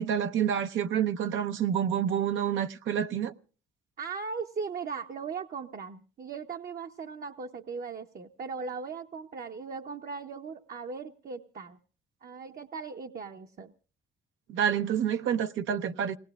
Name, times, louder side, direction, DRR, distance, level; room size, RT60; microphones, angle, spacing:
voice 1, 0.0-3.3 14.5-16.2, right 9 dB, 75° right, 0.9 m, -28 dB
voice 2, 4.0-11.8 12.2-13.7, right 5 dB, 50° right, 0.9 m, -38 dB
28.5 x 19.0 x 2.4 m
cardioid pair, 90°, 20 cm